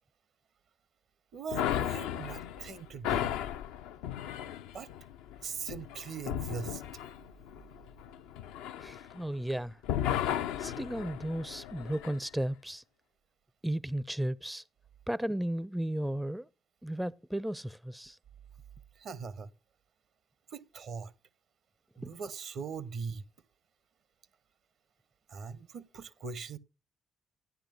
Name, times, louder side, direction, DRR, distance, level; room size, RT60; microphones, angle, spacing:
voice 1, 1.3-3.4 4.7-4.9 5.4-6.8 18.9-19.5 20.5-21.1 21.9-23.2 25.3-26.6, right 5 dB, 60° right, 0.8 m, -40 dB
sound 1, 1.5-9.5 9.8-12.2, left 10 dB, 75° left, 0.4 m, -35 dB
voice 2, 8.8-9.8 10.6-12.8 13.6-14.6 15.1-16.5 16.8-18.2 22.0-22.1, right 1 dB, 5° right, 0.4 m, -34 dB
13.0 x 10.0 x 2.3 m
hypercardioid pair, 45°, 0 cm